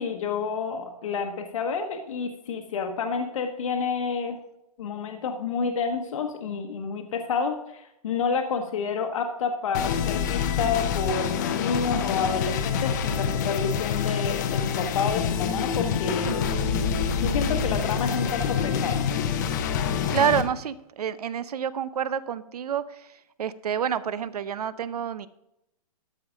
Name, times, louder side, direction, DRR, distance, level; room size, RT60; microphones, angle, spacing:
voice 1, 0.0-4.4 4.8-16.5 17.2-19.0, left 5 dB, 55° left, 4 dB, 1.2 m, -29 dB
sound 1, 9.7-20.4, left 7 dB, 30° left, 0.7 m, -26 dB
voice 2, 20.1-22.8 23.4-25.3, right 8 dB, 80° right, 17 dB, 0.7 m, -28 dB
12.5 x 5.7 x 5.0 m, 0.84 s
hypercardioid pair, 170°, 20 cm